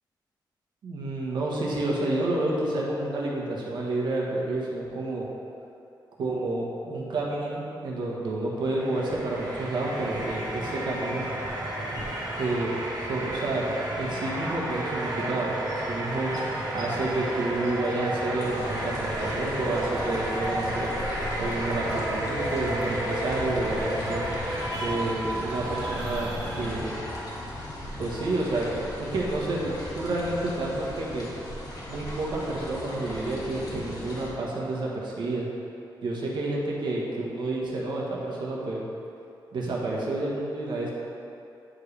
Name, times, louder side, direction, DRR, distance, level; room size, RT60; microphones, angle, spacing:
voice 1, 0.8-5.3 6.2-11.3 12.3-12.7 13.0-15.6 15.9-16.3 16.7-20.9 21.4-24.3 24.8-27.0 28.0-31.3 31.9-35.5 36.0-38.8 39.5-40.9, right 2 dB, 70° right, -4 dB, 1.3 m, -29 dB
sound 1, 8.6-27.1, right 1 dB, 50° right, 1.3 m, -32 dB
sound 2, 18.4-34.3, left 1 dB, 50° left, 1.6 m, -37 dB
9.0 x 5.0 x 3.3 m, 2.7 s
cardioid pair, 115°, 8 cm